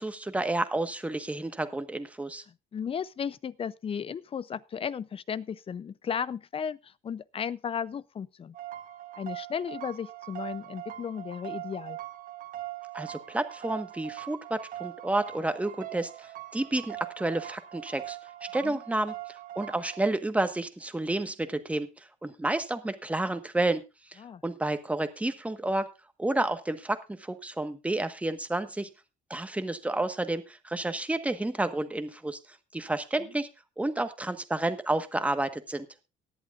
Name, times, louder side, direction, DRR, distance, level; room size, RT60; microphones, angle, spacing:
voice 1, 0.0-2.4 12.9-23.8 24.1-25.9 26.2-28.9 29.3-32.4 32.7-33.5 33.8-35.9, right 2 dB, 10° right, 1.3 m, -30 dB
voice 2, 2.5-8.5 9.2-12.0 18.6-18.8 24.2-24.4 33.2-33.3, left 7 dB, 35° left, 0.6 m, -35 dB
sound 1, 8.5-20.0, right 14 dB, 55° right, 1.1 m, -42 dB
18.0 x 11.0 x 2.5 m
cardioid pair, 110°, 17 cm